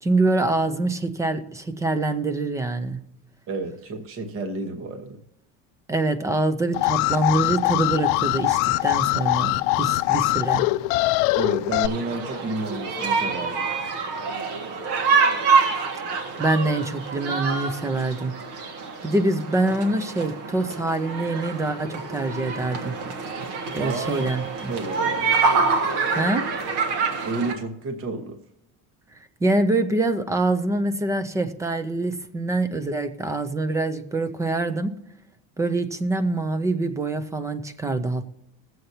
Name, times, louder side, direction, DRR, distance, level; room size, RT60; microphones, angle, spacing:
voice 1, 0.0-3.0 5.9-10.7 16.4-18.3 19.0-22.9 23.3-23.4 23.7-24.7 26.1-26.4 29.4-34.9 35.6-38.3, right 2 dB, 10° right, 11 dB, 0.3 m, -25 dB
voice 2, 3.5-5.2 11.4-13.7 23.8-24.2 24.7-25.4 27.2-28.4, right 3 dB, 35° right, 5 dB, 1.1 m, -31 dB
Alarm, 6.7-11.9, left 18 dB, 85° left, 0.5 m, -22 dB
sound 1, 11.8-27.5, right 5 dB, 70° right, 1.6 m, -26 dB
21.5 x 7.8 x 2.7 m, 0.85 s
cardioid pair, 175°, 37 cm